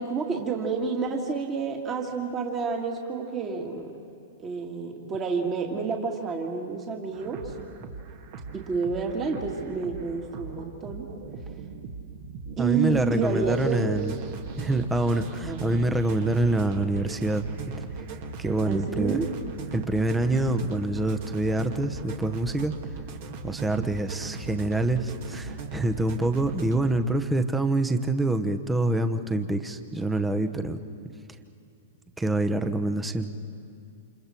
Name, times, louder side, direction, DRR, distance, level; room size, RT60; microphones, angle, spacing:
voice 1, 0.0-4.0 4.4-7.5 8.5-11.1 12.6-13.9 15.5-15.6 18.7-19.3, right 5 dB, 25° right, 1 dB, 2.2 m, -29 dB
sound 1, 7.1-27.0, right 5 dB, 50° right, 2.0 m, -39 dB
voice 2, 12.6-14.1 14.6-17.4 18.4-19.2 19.7-22.7 23.4-30.8 32.2-33.3, right 2 dB, 10° right, 9 dB, 1.0 m, -26 dB
29.0 x 27.5 x 4.5 m, 2.5 s
hypercardioid pair, 110°, 0 cm